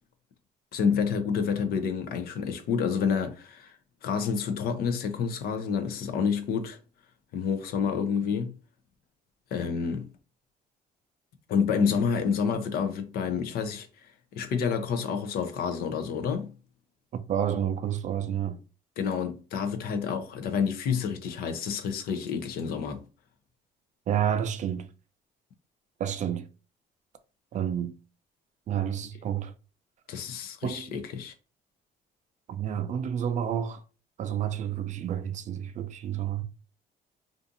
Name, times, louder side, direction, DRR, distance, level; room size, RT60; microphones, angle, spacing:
voice 1, 0.7-3.7 4.0-6.8 7.3-8.6 9.5-10.1 11.5-13.9 14.3-16.5 19.0-23.0 30.1-31.3, left 6 dB, 65° left, 0.5 m, -28 dB
voice 2, 17.1-18.6 24.1-24.9 26.0-26.5 27.5-27.9 28.7-29.5 30.6-30.9 32.5-33.8 34.2-36.4, right 9 dB, 45° right, 0.4 m, -30 dB
2.5 x 2.5 x 2.5 m
cardioid pair, 110°, 17 cm